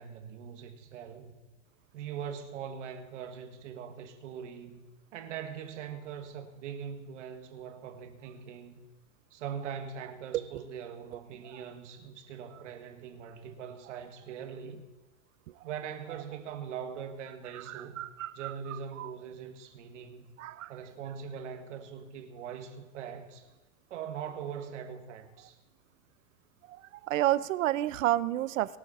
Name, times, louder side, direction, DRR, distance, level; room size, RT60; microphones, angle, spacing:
voice 1, 0.0-1.3 1.9-4.8 5.1-8.8 9.3-14.8 15.6-18.0 18.3-20.3 20.7-23.5 23.9-25.6, right 7 dB, 65° right, 1.7 m, -42 dB
voice 2, 17.7-18.5 19.0-19.1 20.4-20.7 26.7-26.8 27.1-28.8, right 14 dB, 85° right, 0.7 m, -30 dB
21.0 x 7.3 x 4.2 m
supercardioid pair, 170°, 38 cm